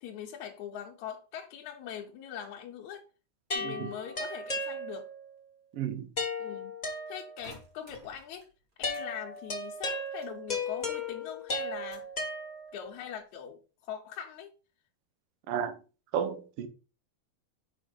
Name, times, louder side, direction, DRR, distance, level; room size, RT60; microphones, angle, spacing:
voice 1, 0.0-3.1 3.6-5.1 6.4-6.7 7.1-8.5 8.8-12.1 12.7-14.5, left 9 dB, 75° left, 2.1 m, -42 dB
sound 1, 3.5-5.3 6.2-7.6 8.8-12.9, left 2 dB, 40° left, 0.5 m, -36 dB
voice 2, 3.6-3.9 5.7-6.1 15.5-15.8 16.1-16.7, right 8 dB, 70° right, 1.6 m, -33 dB
sound 2, 7.4-9.1 9.3-11.1 11.4-12.2 12.7-13.2, equal, 30° right, 2.1 m, -55 dB
6.4 x 4.3 x 5.0 m
omnidirectional pair, 3.5 m